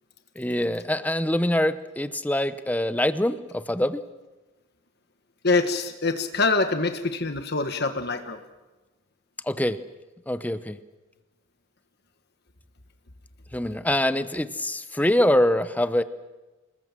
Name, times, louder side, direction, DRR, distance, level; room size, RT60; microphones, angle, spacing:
voice 1, 0.4-4.0 9.5-9.8 10.3-10.8 13.5-16.0, left 1 dB, 10° left, 12 dB, 0.8 m, -24 dB
voice 2, 5.4-8.4, left 3 dB, 50° left, 7 dB, 1.4 m, -25 dB
27.0 x 20.0 x 7.5 m, 1.2 s
head